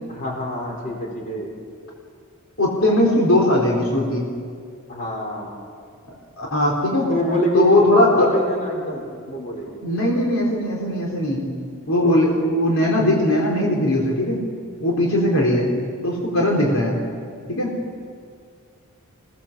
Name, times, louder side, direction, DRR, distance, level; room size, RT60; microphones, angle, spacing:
voice 1, 0.1-1.5 4.9-5.6 7.1-9.8 12.0-12.2, equal, 35° left, 0 dB, 4.9 m, -26 dB
voice 2, 2.6-4.3 6.4-7.1 7.5-8.3 9.8-11.5 11.9-14.4 14.8-15.7 16.0-17.0 17.5-17.8, left 1 dB, 70° left, -2 dB, 3.8 m, -19 dB
27.5 x 18.0 x 7.4 m, 2.2 s
head